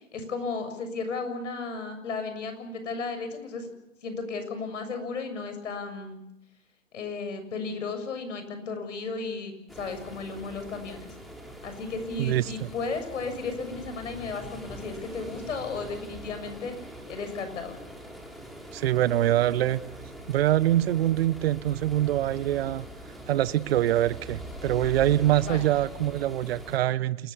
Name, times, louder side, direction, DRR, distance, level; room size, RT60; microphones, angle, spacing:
voice 1, 0.0-3.7 4.0-6.2 6.9-11.1 11.6-16.7 17.1-17.8 25.3-25.6, left 4 dB, 70° left, 8 dB, 7.1 m, -34 dB
sound 1, 9.7-26.8, equal, ahead, 3.8 m, -43 dB
voice 2, 12.2-12.7 18.7-19.8 20.3-22.9 23.3-27.3, right 13 dB, 50° right, 17 dB, 1.0 m, -24 dB
28.0 x 20.5 x 7.1 m, 0.87 s
hypercardioid pair, 135°, 38 cm